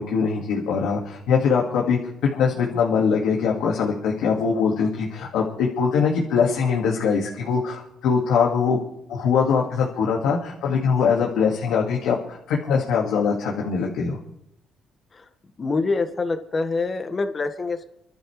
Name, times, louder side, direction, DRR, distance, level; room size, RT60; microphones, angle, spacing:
voice 1, 0.0-2.0 2.3-8.8 9.1-14.2, left 6 dB, 90° left, -2 dB, 2.0 m, -22 dB
voice 2, 15.6-17.8, left 3 dB, 35° left, 7 dB, 1.6 m, -25 dB
27.5 x 12.0 x 3.3 m, 0.76 s
cardioid pair, 90°, 0 cm